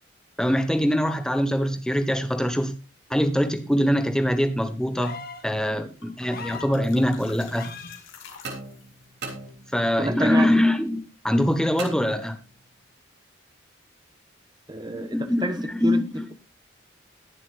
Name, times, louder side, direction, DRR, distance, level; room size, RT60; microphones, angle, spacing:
voice 1, 0.4-2.7 3.1-7.7 9.7-12.4 14.9-16.3, equal, 5° left, 1.3 m, -23 dB
sound 1, 4.9-5.5 6.3-6.8 7.5-8.0 9.5-9.6, left 5 dB, 50° left, 1.6 m, -38 dB
sound 2, 6.0-9.0, left 4 dB, 85° left, 3.4 m, -46 dB
sound 3, 8.4-10.1 11.8-12.7, right 3 dB, 55° right, 3.3 m, -39 dB
voice 2, 10.0-10.6 14.7-15.6 15.8-16.0, right 1 dB, 20° right, 1.2 m, -28 dB
21.5 x 7.3 x 2.5 m
head